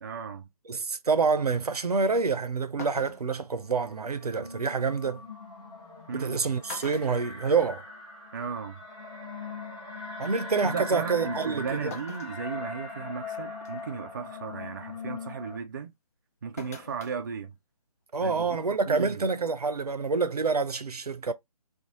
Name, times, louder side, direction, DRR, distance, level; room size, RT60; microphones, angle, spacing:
voice 1, 0.0-0.5 6.1-6.5 8.3-8.8 10.6-15.9 16.4-17.6 18.2-19.3, right 6 dB, 30° right, 0.4 m, -36 dB
voice 2, 0.7-5.2 6.1-7.8 10.2-11.9 18.1-21.3, right 4 dB, 85° right, 0.6 m, -27 dB
sound 1, 2.3-2.4 2.8-3.4 5.0-5.1 6.1-6.3 6.7-8.1 8.4-8.5 9.7-9.8 11.9-12.4 13.0-13.1 13.6-13.9 16.6-17.2 17.5-17.6, left 4 dB, 25° left, 0.5 m, -43 dB
sound 2, 3.7-15.6, left 3 dB, ahead, 1.0 m, -40 dB
2.5 x 2.3 x 2.9 m
figure-of-eight pair, 150°, 19 cm